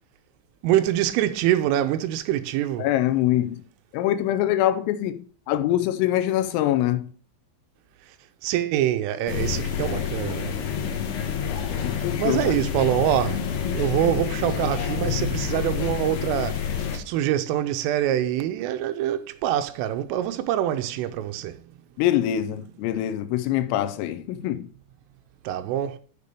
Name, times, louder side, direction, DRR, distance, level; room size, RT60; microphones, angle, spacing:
voice 1, 0.6-2.9 8.4-10.5 11.9-21.6 25.4-26.0, right 12 dB, 80° right, 3.1 m, -25 dB
voice 2, 2.8-3.6 3.9-7.1 11.8-12.6 22.0-24.7, left 12 dB, 85° left, 3.3 m, -24 dB
sound 1, 9.3-17.0, left 8 dB, 65° left, 2.8 m, -28 dB
6.9 x 6.7 x 6.6 m
omnidirectional pair, 5.9 m